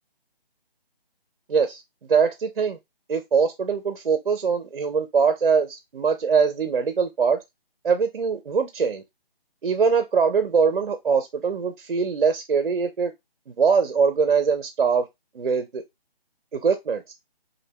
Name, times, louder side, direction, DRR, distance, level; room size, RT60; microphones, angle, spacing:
voice 1, 1.5-1.8 2.1-2.8 3.1-7.4 7.8-9.0 9.6-13.1 13.5-15.1 15.3-15.8 16.5-17.1, right 5 dB, 55° right, 0.4 m, -22 dB
2.6 x 2.1 x 2.7 m
hypercardioid pair, 175°, 30 cm